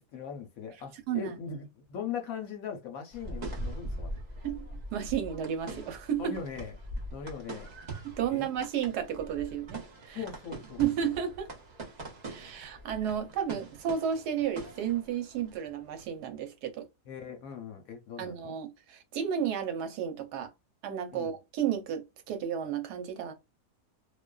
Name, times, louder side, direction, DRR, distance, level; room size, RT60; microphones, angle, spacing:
voice 1, 0.0-4.2 6.2-6.8 7.1-7.7 8.3-8.5 10.1-10.8 17.1-18.5 21.1-21.3, left 6 dB, 70° left, 1.0 m, -40 dB
sound 1, 3.1-16.0, right 1 dB, 45° right, 0.5 m, -42 dB
voice 2, 4.4-6.4 8.0-10.2 10.8-11.5 12.2-16.9 18.2-20.5 20.8-23.3, right 8 dB, 80° right, 1.2 m, -32 dB
2.6 x 2.3 x 2.2 m
omnidirectional pair, 1.7 m